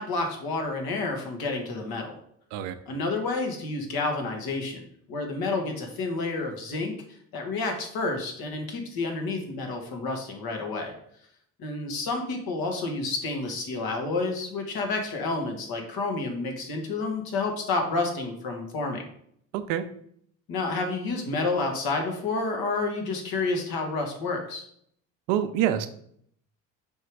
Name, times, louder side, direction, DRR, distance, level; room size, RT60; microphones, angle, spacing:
voice 1, 0.0-2.2 2.9-4.8 5.1-10.9 11.6-19.1 20.5-24.6, left 3 dB, 60° left, 3 dB, 1.7 m, -30 dB
voice 2, 19.5-19.9 25.3-25.9, right 10 dB, 75° right, 9 dB, 0.7 m, -26 dB
5.3 x 3.8 x 4.7 m, 0.66 s
hypercardioid pair, 60°, 40 cm